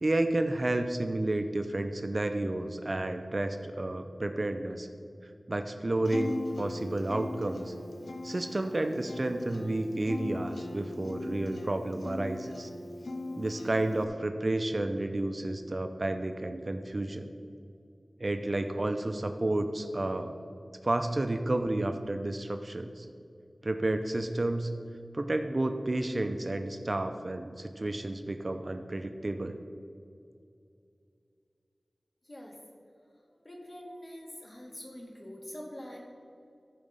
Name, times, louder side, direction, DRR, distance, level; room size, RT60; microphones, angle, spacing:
voice 1, 0.0-4.9 5.5-7.7 8.2-12.7 13.4-17.3 18.2-20.4 20.8-23.1 23.6-24.7 25.1-29.6, right 2 dB, 45° right, 8 dB, 0.6 m, -31 dB
Acoustic guitar, 6.0-14.0, left 2 dB, 85° left, 0.9 m, -40 dB
voice 2, 32.2-32.6 33.4-36.0, equal, 40° left, 0 dB, 2.2 m, -44 dB
14.5 x 5.0 x 5.4 m, 2.5 s
wide cardioid pair, 60°, 0 cm